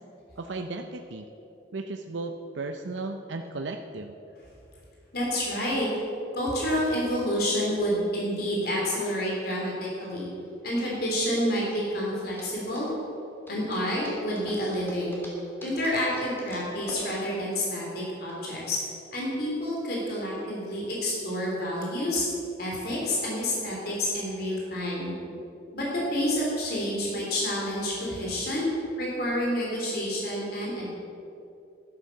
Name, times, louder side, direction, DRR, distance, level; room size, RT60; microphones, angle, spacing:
voice 1, 0.4-1.2 1.7-4.1, right 3 dB, 80° right, 5 dB, 0.7 m, -35 dB
voice 2, 5.1-5.9 6.3-10.3 10.6-12.9 13.5-15.2 15.6-18.8 19.1-22.2 22.6-25.1 25.7-28.7 29.0-30.9, equal, 55° left, -4 dB, 3.6 m, -29 dB
sound 1, 10.2-18.3, equal, 10° left, 2.9 m, -46 dB
11.5 x 11.5 x 6.7 m, 2.8 s
head